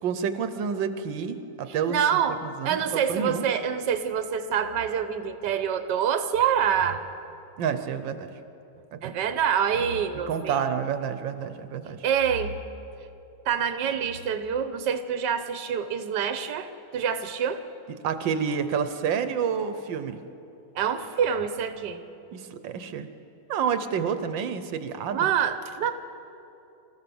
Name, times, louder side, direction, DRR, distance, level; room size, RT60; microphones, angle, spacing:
voice 1, 0.0-2.0 2.4-3.4 7.6-8.3 8.9-9.2 10.3-12.0 18.0-20.2 22.3-23.1 23.5-25.3, right 7 dB, 85° right, 10 dB, 1.6 m, -29 dB
voice 2, 1.9-7.0 9.0-10.6 12.0-12.6 13.5-17.6 20.7-22.0 25.1-25.9, right 8 dB, 70° right, 9 dB, 1.5 m, -26 dB
25.0 x 15.0 x 7.1 m, 2.8 s
omnidirectional pair, 2.0 m